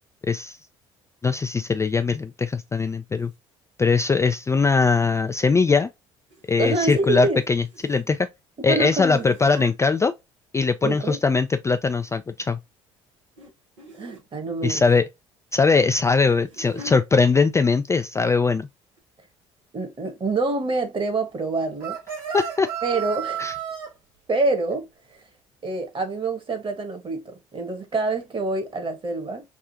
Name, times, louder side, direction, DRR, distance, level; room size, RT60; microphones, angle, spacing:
voice 1, 0.3-0.6 1.2-3.3 3.8-5.9 6.5-8.3 8.6-10.1 10.5-12.6 14.6-15.0 15.5-18.7 22.3-22.7 23.4-23.5, left 4 dB, 20° left, 0.3 m, -21 dB
sound 1, 3.2-3.4 6.3-6.8 7.0-8.3 8.9-9.8 10.8-11.6 12.0-12.4 13.4-13.5 13.8-14.3 15.8-17.0 17.9-18.1 18.3-18.4 19.0-19.1, equal, 90° right, 1.2 m, -45 dB
voice 2, 6.6-7.4 8.7-9.3 10.8-11.2 14.0-14.8 19.7-22.0 22.8-23.4 24.3-24.9 25.6-29.4, right 3 dB, 35° right, 1.3 m, -26 dB
sound 2, 21.8-23.9, right 9 dB, 65° right, 1.7 m, -31 dB
3.6 x 2.4 x 2.7 m
hypercardioid pair, 60°, 16 cm